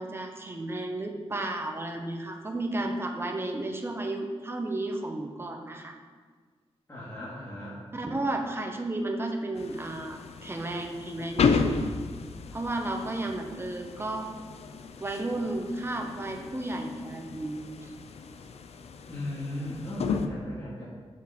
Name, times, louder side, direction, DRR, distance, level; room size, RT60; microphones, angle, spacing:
voice 1, 0.0-6.0 7.9-11.8 12.5-14.3 15.0-17.9, right 2 dB, 25° right, 3 dB, 0.9 m, -33 dB
voice 2, 6.9-7.8 19.1-20.8, left 1 dB, 25° left, -10 dB, 2.3 m, -36 dB
sound 1, 9.6-20.3, left 5 dB, 80° left, 0.5 m, -33 dB
6.7 x 6.5 x 4.3 m, 1.5 s
wide cardioid pair, 120°, 11 cm